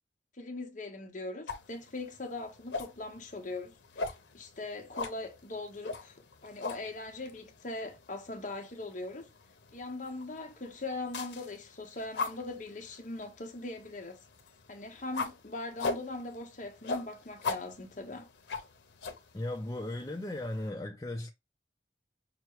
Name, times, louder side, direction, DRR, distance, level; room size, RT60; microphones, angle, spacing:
voice 1, 0.4-4.1 4.3-6.2 6.4-9.3 9.7-14.2 14.7-18.3, left 2 dB, 45° left, 1.0 m, -40 dB
sound 1, 1.5-20.7, left 4 dB, 85° left, 0.8 m, -42 dB
voice 2, 19.3-21.3, left 1 dB, 20° left, 0.5 m, -36 dB
5.9 x 2.2 x 3.0 m
head